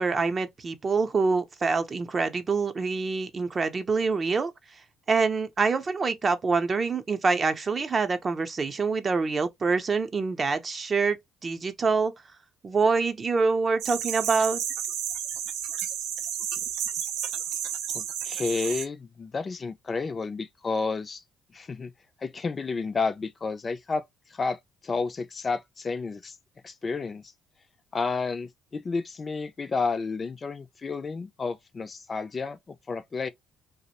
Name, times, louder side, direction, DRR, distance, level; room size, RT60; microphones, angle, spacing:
voice 1, 0.0-4.5 5.1-12.1 12.6-14.6, right 4 dB, 35° right, 0.5 m, -26 dB
sound 1, 13.8-18.9, right 9 dB, 85° right, 0.4 m, -32 dB
voice 2, 17.9-21.2 21.5-21.9 22.2-24.0 24.3-26.4 26.6-27.2 27.9-33.3, left 4 dB, 35° left, 0.4 m, -31 dB
2.5 x 2.0 x 2.8 m
supercardioid pair, 80°, 0 cm